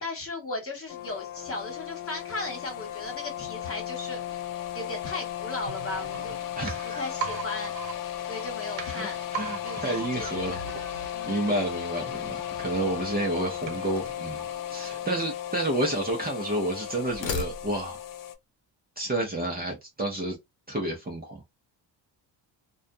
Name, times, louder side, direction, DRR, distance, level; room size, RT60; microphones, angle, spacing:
voice 1, 0.0-4.4 4.7-6.4 6.8-7.7 8.3-9.2 9.6-10.6 11.1-11.4 14.8-15.1, left 2 dB, 30° left, 1.3 m, -36 dB
sound 1, 0.9-18.4, left 11 dB, 50° left, 0.4 m, -35 dB
sound 2, 5.7-15.4 15.7-15.8, right 6 dB, 85° right, 0.8 m, -41 dB
voice 2, 6.6-7.0 9.0-9.1 9.3-10.6 10.9-14.4 14.7-18.0 19.0-20.4 20.7-21.4, right 1 dB, 20° right, 0.7 m, -30 dB
sound 3, 13.6-14.4 15.3-16.4 17.0-18.1, left 5 dB, 75° left, 0.8 m, -38 dB
2.4 x 2.3 x 2.6 m
cardioid pair, 100°, 45 cm